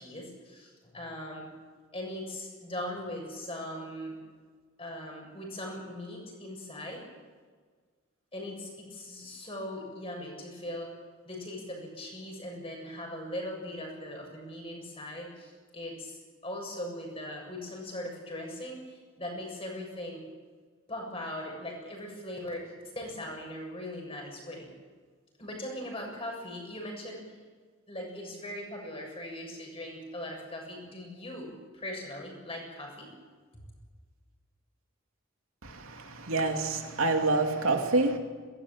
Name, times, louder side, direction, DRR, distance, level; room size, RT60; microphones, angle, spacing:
voice 1, 0.0-1.5 1.9-4.2 4.8-7.0 8.3-10.9 11.2-20.2 20.9-22.6 23.0-24.7 25.4-27.2 27.9-33.1, left 1 dB, 25° left, 1 dB, 7.4 m, -40 dB
voice 2, 35.6-38.2, right 3 dB, 80° right, 3 dB, 2.9 m, -27 dB
22.5 x 19.5 x 8.9 m, 1.5 s
head